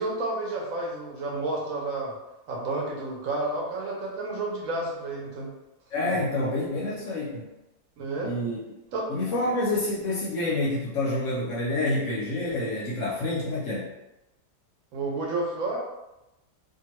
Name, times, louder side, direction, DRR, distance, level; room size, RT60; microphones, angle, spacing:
voice 1, 0.0-2.1 2.5-5.5 8.0-8.3 8.9-9.1 14.9-15.8, right 2 dB, 65° right, -2 dB, 1.1 m, -30 dB
voice 2, 5.9-7.5 8.2-8.6 9.1-13.9, left 2 dB, 65° left, -4 dB, 0.8 m, -28 dB
2.8 x 2.3 x 2.9 m, 0.94 s
omnidirectional pair, 1.7 m